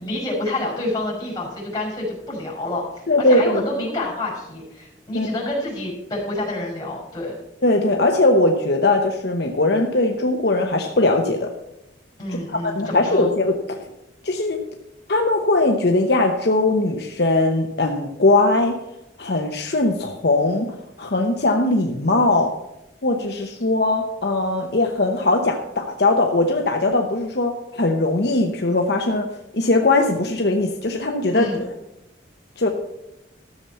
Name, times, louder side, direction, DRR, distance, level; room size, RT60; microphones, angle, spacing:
voice 1, 0.0-2.8 3.3-7.4 12.2-13.3 31.3-31.6, left 1 dB, 20° left, -3 dB, 5.3 m, -28 dB
voice 2, 3.1-3.6 5.1-5.3 7.6-11.5 12.5-13.8 14.2-14.6 15.1-18.8 19.2-22.6 23.0-31.5 32.6-32.7, left 2 dB, 60° left, 3 dB, 0.9 m, -20 dB
13.5 x 7.1 x 5.6 m, 0.91 s
head